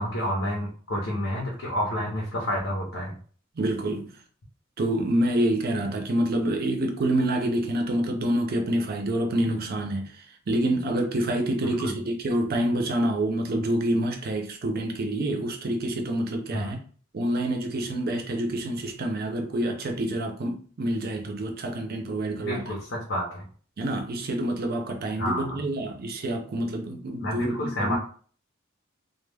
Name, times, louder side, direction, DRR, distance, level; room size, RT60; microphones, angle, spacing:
voice 1, 0.0-3.2 11.6-11.9 16.5-16.8 22.5-23.5 25.2-25.6 27.2-28.0, equal, 75° left, 0.6 m, -29 dB
voice 2, 3.6-4.1 4.8-10.1 10.5-16.8 17.1-22.8 23.8-28.0, right 1 dB, 50° right, 0.5 m, -27 dB
2.2 x 2.0 x 3.2 m
head